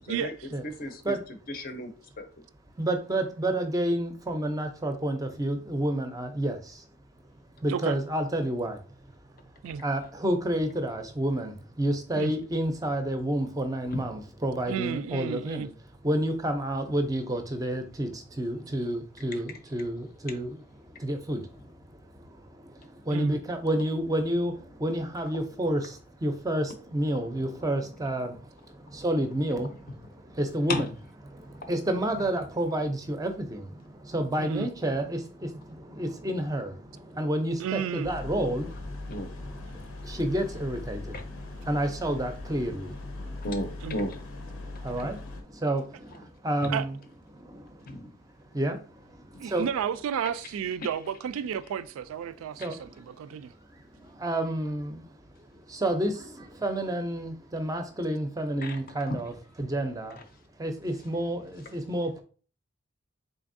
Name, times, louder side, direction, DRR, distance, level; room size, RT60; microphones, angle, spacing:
voice 1, 0.6-1.1 1.5-1.9 2.2-2.4 30.7-30.8 39.1-39.3 43.4-44.2 46.6-46.7 47.8-48.1 52.6-52.7 58.6-58.8 59.1-59.2, left 1 dB, 45° left, 0.5 m, -33 dB
voice 2, 2.8-6.9 7.6-8.8 9.1-15.7 16.0-30.9 31.2-43.5 44.5-47.0 47.3-48.1 48.4-49.6 52.4-53.4 53.7-60.2 60.6-62.2, right 1 dB, 15° right, 0.4 m, -30 dB
voice 3, 14.7-15.7 23.1-23.4 34.4-34.7 37.6-38.1 43.8-44.0 46.7-46.8 49.4-53.5, right 8 dB, 80° right, 0.3 m, -32 dB
sound 1, 38.0-45.4, left 2 dB, 90° left, 0.8 m, -40 dB
3.9 x 3.4 x 2.5 m
head